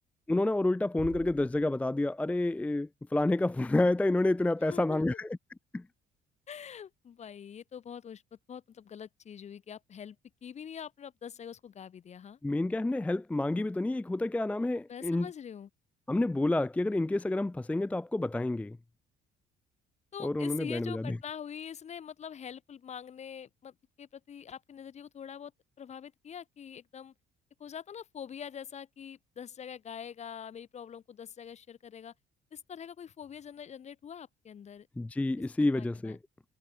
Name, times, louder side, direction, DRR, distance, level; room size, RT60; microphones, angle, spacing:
voice 1, 0.3-5.3 5.7-5.8 12.4-15.3 16.1-18.8 20.2-21.2 35.0-36.2, left 2 dB, 10° left, 0.5 m, -29 dB
Bass drum, 1.0-2.4, right 9 dB, 50° right, 7.1 m, -48 dB
voice 2, 4.6-5.0 6.5-8.2 8.5-10.2 10.4-12.4 14.9-15.7 20.1-25.5 25.8-27.1 27.6-32.1 32.5-34.9 35.6-36.2, left 8 dB, 40° left, 1.7 m, -44 dB
cardioid pair, 110°, 17 cm